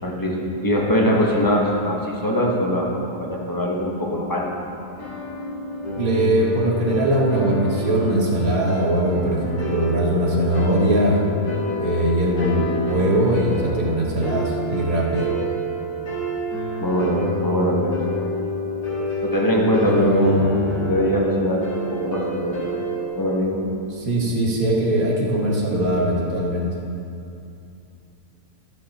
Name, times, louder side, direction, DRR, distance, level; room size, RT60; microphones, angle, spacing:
voice 1, 0.0-4.5 16.8-17.9 19.2-20.4 20.8-22.6 23.1-23.6, equal, 15° left, -2 dB, 1.2 m, -22 dB
sound 1, 4.7-23.1, equal, 80° left, 2.8 m, -28 dB
voice 2, 6.0-11.2 11.8-15.3 19.8-20.5 24.0-26.7, right 1 dB, 65° right, -2 dB, 2.0 m, -21 dB
12.0 x 7.8 x 4.2 m, 2.7 s
omnidirectional pair, 1.7 m